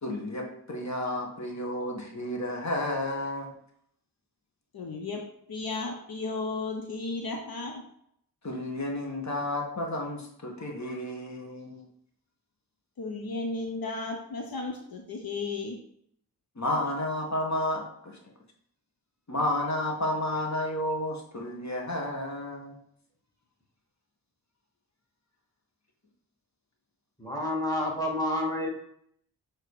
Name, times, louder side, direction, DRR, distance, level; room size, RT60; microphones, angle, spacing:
voice 1, 0.0-3.5 8.4-11.9 16.6-18.2 19.3-22.8, left 1 dB, 45° left, 1 dB, 1.7 m, -31 dB
voice 2, 4.7-5.2 5.5-7.8 13.0-15.8, left 3 dB, 65° left, 2 dB, 1.0 m, -34 dB
voice 3, 27.2-28.7, left 1 dB, 10° left, -1 dB, 2.2 m, -29 dB
7.6 x 3.2 x 4.9 m, 0.69 s
cardioid pair, 60°, 39 cm